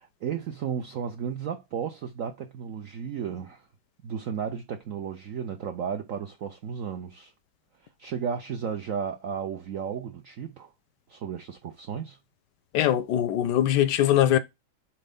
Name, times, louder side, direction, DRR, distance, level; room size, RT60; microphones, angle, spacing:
voice 1, 0.0-3.7 4.0-7.3 7.8-10.7 11.1-12.2, right 7 dB, 75° right, 0.7 m, -34 dB
voice 2, 12.7-14.4, left 11 dB, 70° left, 1.0 m, -22 dB
4.5 x 4.1 x 5.1 m
omnidirectional pair, 2.3 m